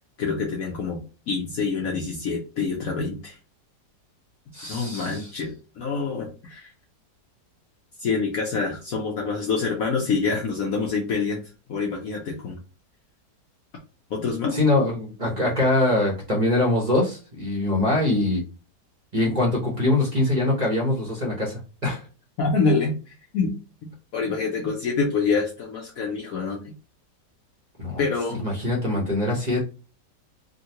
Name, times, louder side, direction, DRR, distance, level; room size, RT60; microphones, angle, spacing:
voice 1, 0.2-1.0 1.3-3.4 4.7-6.7 8.0-11.4 11.7-12.6 14.1-14.6 22.4-23.5 23.8-26.7 28.0-28.5, left 4 dB, 60° left, -1 dB, 1.0 m, -26 dB
voice 2, 4.5-5.3 14.5-18.4 19.1-22.0 27.8-28.0 28.4-29.6, left 2 dB, 35° right, -2 dB, 0.7 m, -23 dB
3.7 x 2.2 x 2.8 m, 0.34 s
omnidirectional pair, 1.9 m